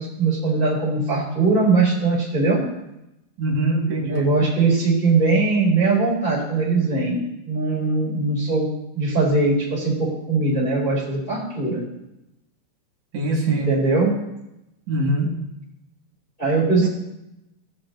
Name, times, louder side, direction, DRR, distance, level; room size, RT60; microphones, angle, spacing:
voice 1, 0.0-2.6 4.1-8.7 8.9-11.8 13.5-14.1 16.4-16.9, right 3 dB, 15° left, -4 dB, 2.9 m, -20 dB
voice 2, 3.4-4.3 13.1-13.7 14.9-15.3 16.8-16.9, right 1 dB, 50° right, -3 dB, 2.7 m, -23 dB
18.0 x 6.5 x 2.9 m, 0.89 s
omnidirectional pair, 5.9 m